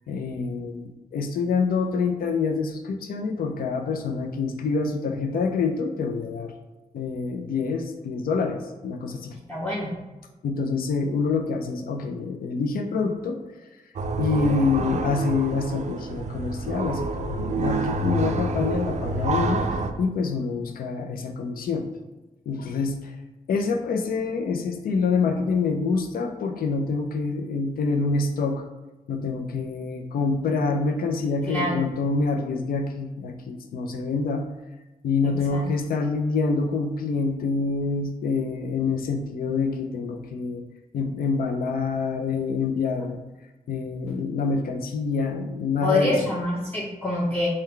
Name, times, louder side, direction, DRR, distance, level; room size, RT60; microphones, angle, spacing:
voice 1, 0.1-6.5 6.9-9.4 10.4-13.4 14.2-21.9 22.5-23.1 23.5-28.6 29.1-34.4 35.0-40.6 40.9-43.2 43.7-46.1, left 4 dB, 85° left, 4 dB, 0.4 m, -26 dB
voice 2, 9.5-9.9 14.7-14.9 31.5-31.8 35.5-35.6 45.8-47.5, left 2 dB, 10° left, -5 dB, 0.6 m, -26 dB
sound 1, 14.0-19.9, right 2 dB, 50° right, 0.4 m, -28 dB
3.8 x 2.2 x 4.3 m, 1.1 s
wide cardioid pair, 90°, 15 cm